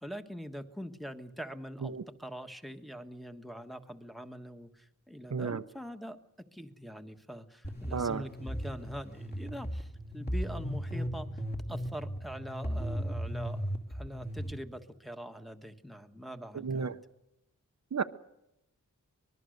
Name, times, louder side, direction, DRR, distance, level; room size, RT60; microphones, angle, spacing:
voice 1, 0.0-6.2 6.5-9.9 10.1-11.3 11.7-13.6 13.9-17.0, equal, ahead, 7 dB, 1.5 m, -43 dB
voice 2, 5.3-5.6 7.9-8.2 16.5-17.0 17.9-18.0, right 5 dB, 55° right, 9 dB, 0.8 m, -32 dB
sound 1, 7.6-14.5, equal, 30° left, 2.8 m, -36 dB
24.5 x 21.0 x 6.6 m, 0.87 s
wide cardioid pair, 85°, 32 cm